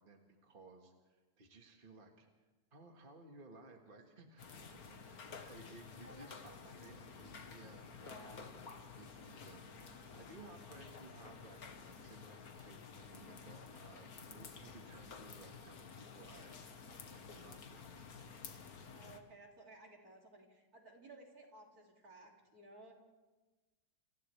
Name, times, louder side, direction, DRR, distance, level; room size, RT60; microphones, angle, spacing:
voice 1, 0.0-2.3 2.7-17.9, right 2 dB, 35° right, 2 dB, 1.8 m, -59 dB
sound 1, 4.4-19.2, left 5 dB, 65° left, 1.8 m, -52 dB
voice 2, 6.0-7.0 8.0-8.5 10.8-10.9 18.9-22.9, right 2 dB, 65° right, 0 dB, 3.5 m, -58 dB
29.0 x 27.0 x 3.4 m, 1.2 s
omnidirectional pair, 1.7 m